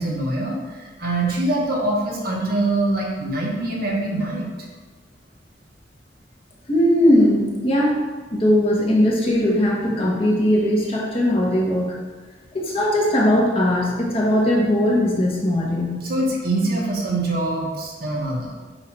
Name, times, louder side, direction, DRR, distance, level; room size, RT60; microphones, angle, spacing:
voice 1, 0.0-4.5 16.0-18.5, right 2 dB, 55° right, -2 dB, 1.2 m, -24 dB
voice 2, 6.7-8.0 8.3-12.0 12.5-16.0, left 1 dB, 35° left, -4 dB, 1.3 m, -19 dB
8.0 x 2.8 x 4.7 m, 1.4 s
head